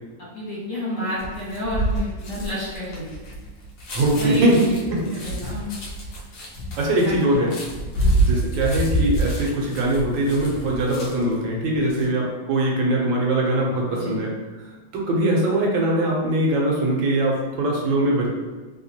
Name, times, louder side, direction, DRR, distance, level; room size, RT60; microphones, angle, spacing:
voice 1, 0.3-3.1 4.1-4.8 5.1-5.7 6.9-7.5 7.9-8.2 12.0-12.1 13.9-14.2, equal, 45° left, -10 dB, 1.8 m, -30 dB
sound 1, 1.2-11.4 11.7-12.1, right 1 dB, 60° left, 0.9 m, -27 dB
voice 2, 3.9-4.6 4.9-5.1 6.8-7.5 8.2-14.3 14.9-18.3, right 1 dB, 80° right, -2 dB, 1.4 m, -21 dB
3.4 x 2.8 x 2.8 m, 1.3 s
omnidirectional pair, 2.0 m